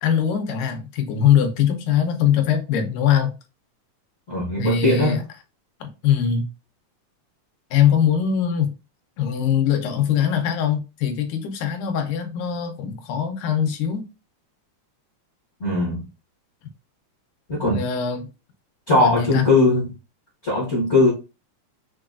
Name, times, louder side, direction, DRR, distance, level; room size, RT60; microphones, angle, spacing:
voice 1, 0.0-3.4 4.6-5.2 5.8-6.5 7.7-8.7 9.2-14.1 17.6-18.3 19.0-19.5, left 8 dB, 85° left, 2.3 m, -22 dB
voice 2, 4.3-5.2 15.6-16.1 17.5-17.8 18.9-19.9 20.4-21.1, left 2 dB, 60° left, 0.7 m, -19 dB
5.8 x 2.3 x 2.4 m
omnidirectional pair, 3.6 m